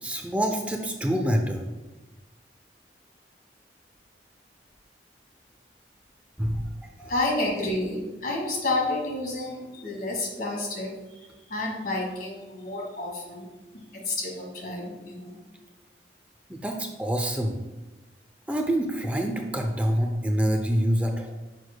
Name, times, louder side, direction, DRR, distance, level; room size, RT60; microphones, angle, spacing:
voice 1, 0.0-1.6 6.4-6.6 16.5-17.6 18.5-21.3, equal, 10° right, 3 dB, 0.5 m, -26 dB
voice 2, 7.0-13.5 13.7-15.4, left 2 dB, 55° left, -1 dB, 1.9 m, -30 dB
9.6 x 6.2 x 2.2 m, 1.1 s
head